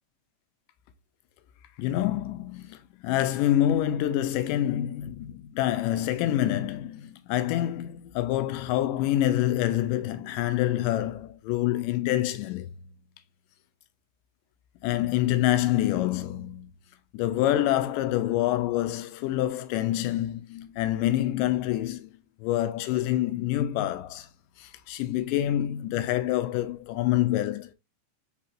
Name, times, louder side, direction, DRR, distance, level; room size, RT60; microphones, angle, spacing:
voice 1, 1.8-12.7 14.8-16.7 17.1-22.1 22.4-24.3 24.6-27.7, left 13 dB, 85° left, 2.2 m, -26 dB
5.0 x 4.2 x 2.5 m
omnidirectional pair, 3.8 m